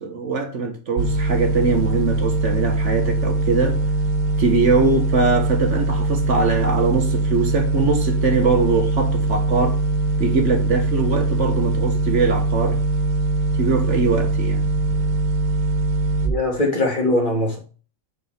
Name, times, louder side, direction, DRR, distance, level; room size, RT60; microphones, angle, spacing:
voice 1, 0.0-3.8 4.4-9.8 10.2-12.8 13.6-14.6, right 4 dB, 55° right, 1.4 m, -22 dB
sound 1, 1.0-16.3, right 3 dB, 90° right, 1.8 m, -21 dB
voice 2, 16.2-17.6, left 2 dB, 35° left, 2.5 m, -21 dB
5.4 x 5.4 x 6.3 m
omnidirectional pair, 1.5 m